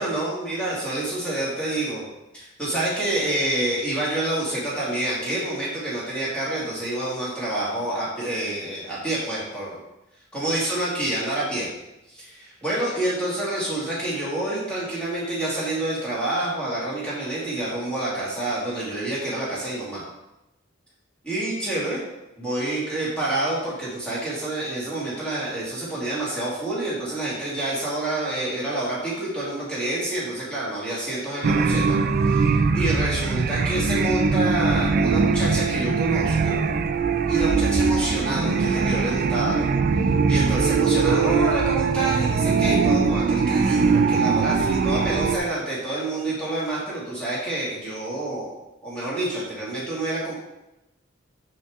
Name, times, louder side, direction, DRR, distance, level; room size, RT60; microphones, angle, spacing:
voice 1, 0.0-2.0 2.3-9.8 10.3-11.7 12.1-20.0 21.2-22.0 22.4-36.6 37.3-39.7 40.0-48.6 48.8-50.3, right 1 dB, 5° left, -8 dB, 2.1 m, -28 dB
sound 1, 31.4-45.4, right 4 dB, 50° right, 0.4 m, -21 dB
6.7 x 5.5 x 3.5 m, 0.94 s
head